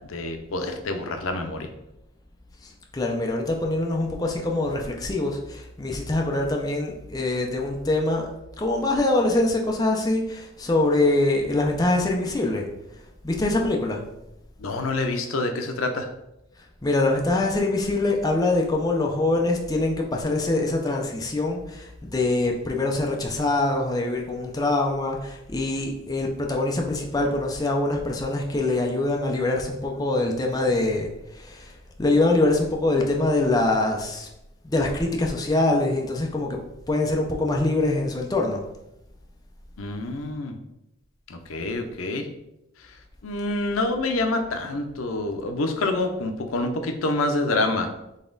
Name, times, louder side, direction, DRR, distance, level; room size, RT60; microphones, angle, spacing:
voice 1, 0.1-1.7 14.6-16.1 39.8-40.6 41.3-42.3 43.2-47.9, left 2 dB, 80° left, 6 dB, 0.6 m, -27 dB
voice 2, 2.6-8.3 8.6-12.7 13.2-14.0 16.8-34.3 34.6-36.6 36.9-38.6, left 2 dB, 20° left, 0 dB, 0.5 m, -24 dB
4.1 x 3.3 x 3.8 m, 0.88 s
head